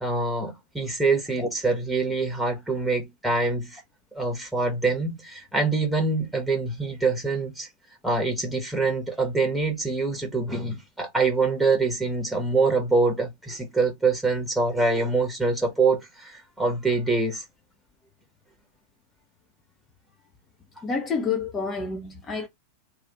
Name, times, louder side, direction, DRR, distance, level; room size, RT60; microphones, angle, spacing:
voice 1, 0.0-3.8 4.1-7.7 8.0-17.4, right 3 dB, ahead, 1.0 m, -25 dB
voice 2, 20.8-22.5, left 5 dB, 20° left, 0.7 m, -28 dB
3.1 x 2.4 x 3.9 m
figure-of-eight pair, 90°, 0 cm